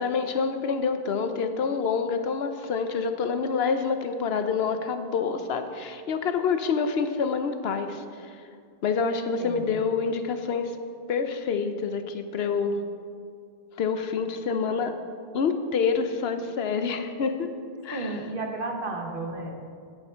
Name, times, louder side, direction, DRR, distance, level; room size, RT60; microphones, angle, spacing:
voice 1, 0.0-8.3 8.8-10.7 11.1-12.8 13.8-14.9 15.3-17.5 17.8-18.1, left 5 dB, 70° left, 8 dB, 0.9 m, -27 dB
voice 2, 9.4-9.8 17.9-19.7, right 2 dB, 55° right, 3 dB, 1.2 m, -33 dB
10.0 x 8.5 x 4.4 m, 2.2 s
omnidirectional pair, 1.1 m